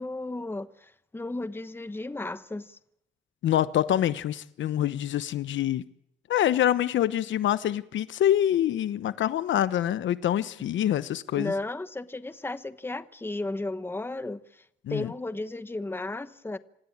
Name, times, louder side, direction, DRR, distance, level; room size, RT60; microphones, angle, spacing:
voice 1, 0.0-2.8 11.3-16.6, left 2 dB, 10° left, 1.1 m, -34 dB
voice 2, 3.4-5.8 6.3-11.5 14.8-15.1, left 11 dB, 70° left, 1.1 m, -25 dB
27.0 x 16.5 x 8.8 m
cardioid pair, 90°, 20 cm